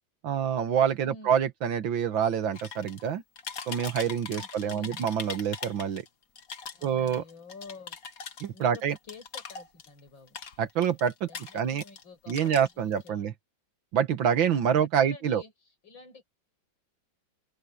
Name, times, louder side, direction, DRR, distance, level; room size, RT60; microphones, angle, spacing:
voice 1, 0.2-3.2 3.7-6.1 6.8-7.2 8.4-9.0 10.6-11.3 11.5-11.8 12.3-13.3 13.9-15.4, right 8 dB, 85° right, 2.1 m, -26 dB
voice 2, 1.0-1.4 4.3-5.1 6.7-8.0 8.5-10.4 11.3-13.3 14.5-16.2, left 4 dB, 80° left, 6.9 m, -49 dB
sound 1, 2.5-3.1 3.4-6.1 6.4-10.0 10.3-12.0 12.3-13.1, left 6 dB, 50° left, 1.7 m, -41 dB
omnidirectional pair, 2.1 m